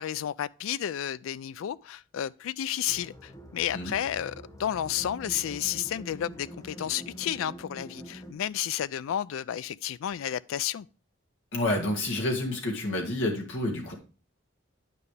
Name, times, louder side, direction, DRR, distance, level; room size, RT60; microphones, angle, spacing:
voice 1, 0.0-10.9, left 10 dB, 85° left, 0.3 m, -32 dB
sound 1, 2.9-8.3, equal, 15° left, 0.9 m, -45 dB
voice 2, 11.5-13.9, left 1 dB, 70° left, 1.8 m, -29 dB
9.3 x 5.5 x 3.2 m
head